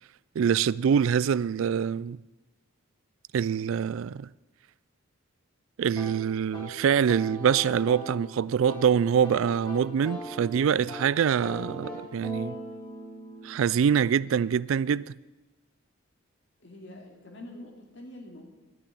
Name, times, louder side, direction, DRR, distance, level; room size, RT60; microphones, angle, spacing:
voice 1, 0.4-2.2 3.3-4.3 5.8-12.5 13.4-15.1, right 7 dB, 65° right, 0.3 m, -25 dB
sound 1, 5.9-14.5, equal, 20° left, 2.4 m, -41 dB
voice 2, 16.6-18.5, left 1 dB, 55° left, 2.7 m, -45 dB
12.0 x 7.0 x 9.6 m
head